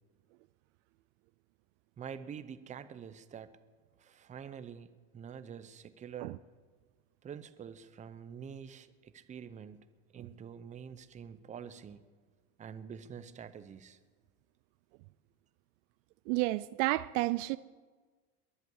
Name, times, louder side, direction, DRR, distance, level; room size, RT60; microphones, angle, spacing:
voice 1, 2.0-3.5 4.0-6.4 7.2-9.8 10.1-12.0 12.6-14.0, right 7 dB, 15° right, 0.6 m, -46 dB
voice 2, 16.3-17.6, right 20 dB, 60° right, 0.5 m, -31 dB
22.0 x 8.2 x 8.0 m
supercardioid pair, 135°, 43 cm